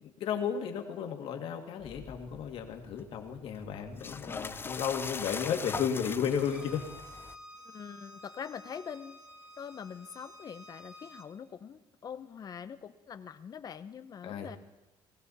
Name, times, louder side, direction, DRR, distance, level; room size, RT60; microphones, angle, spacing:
voice 1, 0.2-6.8 14.2-14.6, left 7 dB, 65° left, 3 dB, 2.3 m, -33 dB
sound 1, 1.8-7.4, left 5 dB, 20° left, 0.5 m, -42 dB
Bowed string instrument, 6.3-11.3, equal, 10° right, 1.7 m, -51 dB
voice 2, 7.7-9.2 9.6-14.6, left 7 dB, 40° left, 11 dB, 0.9 m, -44 dB
20.0 x 15.5 x 4.2 m, 1.1 s
cardioid pair, 105°, 10 cm